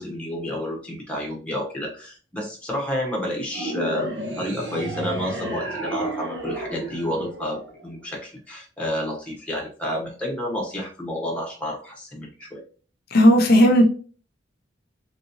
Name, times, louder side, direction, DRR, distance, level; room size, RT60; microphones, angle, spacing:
voice 1, 0.0-12.6, left 1 dB, 5° left, -1 dB, 0.9 m, -30 dB
sound 1, 3.5-8.0, right 1 dB, 70° right, 0.9 m, -32 dB
voice 2, 13.1-13.9, equal, 55° left, 2 dB, 0.6 m, -14 dB
3.3 x 2.9 x 2.6 m, 0.38 s
head